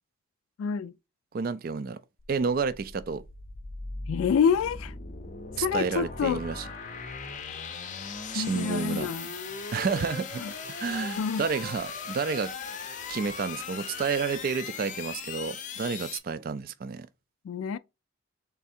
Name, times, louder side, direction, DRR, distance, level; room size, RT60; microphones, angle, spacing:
voice 1, 0.6-0.9 4.1-4.9 5.6-6.4 8.2-9.3 10.4-10.5 11.2-11.4 17.4-17.8, left 6 dB, 85° left, 0.3 m, -27 dB
voice 2, 1.3-2.0 2.3-3.2 5.6-6.7 8.3-9.1 9.7-10.4 10.7-12.5 13.1-17.1, right 5 dB, 45° right, 0.3 m, -30 dB
sound 1, 2.2-16.2, left 5 dB, 35° left, 0.6 m, -39 dB
3.6 x 3.3 x 4.2 m
head